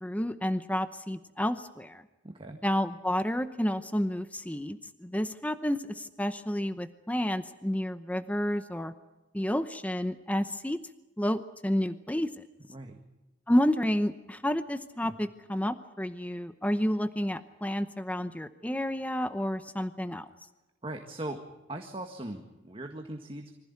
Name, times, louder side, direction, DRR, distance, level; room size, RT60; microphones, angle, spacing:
voice 1, 0.0-2.0 2.6-8.9 9.3-10.8 11.2-12.4 13.5-20.3, equal, 10° left, 10 dB, 0.8 m, -30 dB
voice 2, 2.2-2.6 12.7-13.0 15.0-15.1 20.8-21.4 21.7-23.5, right 1 dB, 30° right, 4 dB, 1.8 m, -39 dB
25.0 x 15.5 x 9.7 m, 1.1 s
head